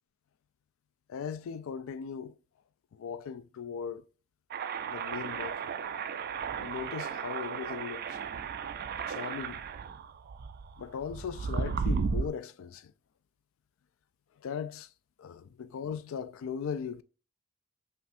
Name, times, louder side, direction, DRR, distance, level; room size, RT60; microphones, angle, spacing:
voice 1, 1.1-2.3 2.9-4.0 4.8-5.7 6.6-8.2 9.1-9.6 10.8-12.9 14.4-14.9 15.2-17.0, left 7 dB, 70° left, 0.3 m, -38 dB
sound 1, 4.5-12.3, right 6 dB, 45° right, 0.3 m, -35 dB
5.6 x 2.5 x 2.6 m
head